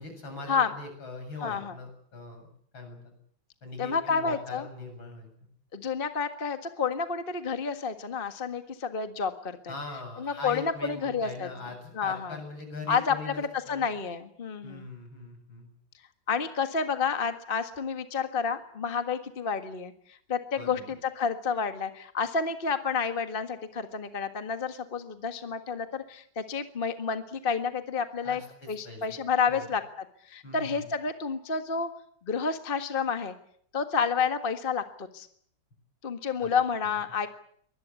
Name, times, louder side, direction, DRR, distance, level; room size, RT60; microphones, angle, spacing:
voice 1, 0.0-2.5 2.7-3.1 3.6-5.3 9.7-13.9 14.6-15.7 20.6-20.9 28.2-29.2 29.5-29.7 30.4-30.9 36.4-36.5, left 3 dB, 75° left, 5 dB, 8.3 m, -41 dB
voice 2, 1.4-1.7 3.8-4.6 5.7-9.7 10.2-11.5 11.9-12.4 12.9-14.9 16.3-28.4 28.7-29.8 30.2-31.9 32.2-33.3 33.7-35.3 36.0-37.3, left 5 dB, 30° left, 8 dB, 1.7 m, -30 dB
24.0 x 20.0 x 8.4 m, 0.63 s
omnidirectional pair, 2.2 m